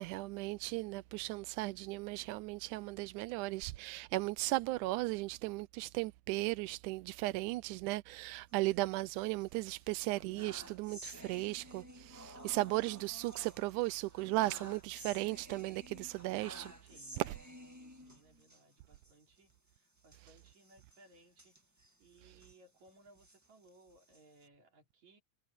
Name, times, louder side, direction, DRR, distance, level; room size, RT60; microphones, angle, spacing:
voice 1, 0.0-16.7 17.2-17.3, right 20 dB, 80° right, 1.9 m, -36 dB
sound 1, 8.5-9.4 9.8-18.6 19.0-19.1 19.4-19.5 20.0-22.6 23.1-24.5, right 1 dB, 10° right, 0.9 m, -53 dB
voice 2, 16.8-17.3 17.7-21.6 22.0-25.2, right 2 dB, 60° right, 5.6 m, -64 dB
omnidirectional pair, 3.8 m